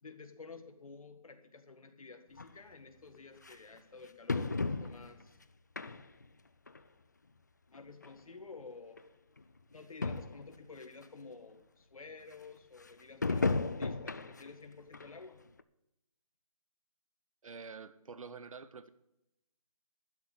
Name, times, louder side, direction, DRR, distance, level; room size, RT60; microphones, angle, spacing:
voice 1, 0.0-5.4 7.7-9.0 9.7-15.4, left 4 dB, 70° left, 7 dB, 1.7 m, -51 dB
sound 1, 2.4-2.5 3.4-3.5 4.3-5.2 5.8-6.3 6.7-6.8 7.7-7.8 8.0-8.1 9.0-9.1 9.4-9.5 9.7-9.8 10.0-10.5 11.0-11.1 13.2-14.5 14.9-15.1 15.6-15.7, left 3 dB, 30° left, 0.4 m, -34 dB
voice 2, 17.4-18.9, right 5 dB, 65° right, 14 dB, 0.8 m, -47 dB
12.0 x 6.8 x 8.1 m, 0.87 s
hypercardioid pair, 170°, 19 cm